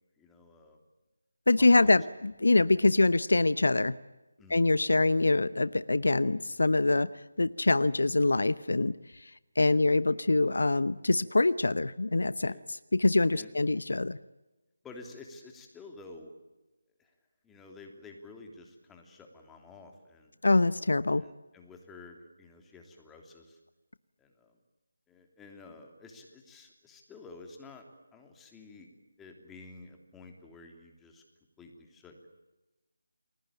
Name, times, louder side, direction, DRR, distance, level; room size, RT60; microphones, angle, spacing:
voice 1, 0.2-0.8 1.5-2.0 4.4-4.6 9.6-9.8 12.4-12.6 13.3-13.5 14.8-16.3 17.0-17.1 17.4-20.3 21.2-23.6 24.2-24.5 25.1-27.9 28.1-28.9 29.2-31.2 31.6-32.3, left 3 dB, 5° left, 3 dB, 3.1 m, -51 dB
voice 2, 1.5-3.9 4.5-7.1 7.4-8.9 9.6-12.5 12.9-14.2 20.4-21.2, left 2 dB, 65° left, 16 dB, 0.8 m, -24 dB
29.5 x 21.0 x 8.9 m, 1.1 s
figure-of-eight pair, 155°, 0 cm